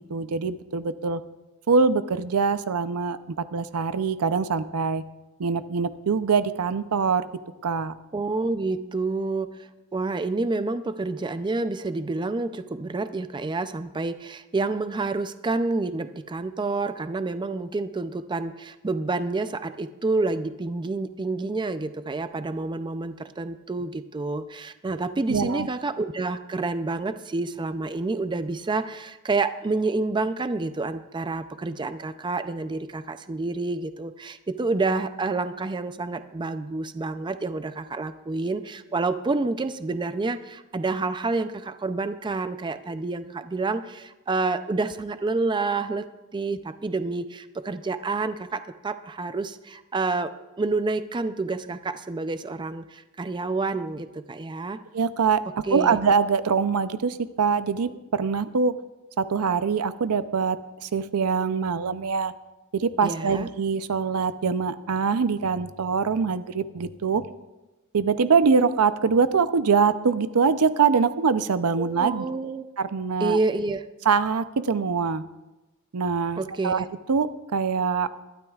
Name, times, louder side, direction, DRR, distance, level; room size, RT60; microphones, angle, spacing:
voice 1, 0.1-1.2 1.7-3.2 3.5-5.0 5.4-7.3 7.6-7.9 25.3-25.7 54.9-55.4 55.7-58.7 59.2-60.6 60.8-62.3 62.7-67.2 67.9-72.2 72.8-73.4 74.1-75.2 75.9-78.1, right 5 dB, 80° right, 13 dB, 0.6 m, -23 dB
voice 2, 8.1-46.1 46.3-54.8 55.6-56.0 63.0-63.5 71.8-72.7 73.2-73.9 76.4-76.9, right 3 dB, 20° right, 11 dB, 0.4 m, -28 dB
22.0 x 12.0 x 2.4 m, 1.1 s
head